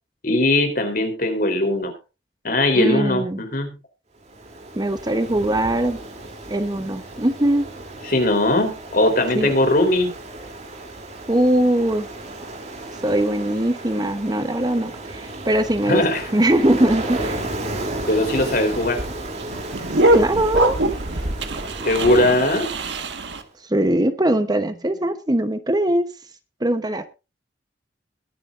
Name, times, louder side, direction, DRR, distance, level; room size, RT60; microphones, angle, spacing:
voice 1, 0.2-1.9 2.4-3.7 8.1-10.1 15.9-16.3 18.1-19.0 21.8-22.7, left 1 dB, 55° left, 6 dB, 3.7 m, -19 dB
voice 2, 2.7-3.4 4.8-6.0 6.5-7.7 9.3-9.5 11.3-12.1 13.0-16.0 16.3-17.4 20.1-20.8 23.7-26.1 26.6-27.1, right 1 dB, 20° right, 10 dB, 0.9 m, -21 dB
Ocean, 4.2-23.4, right 2 dB, 40° right, 3.0 m, -34 dB
sound 1, 17.8-23.4, right 1 dB, 80° right, 1.6 m, -23 dB
22.0 x 9.4 x 2.6 m, 0.29 s
head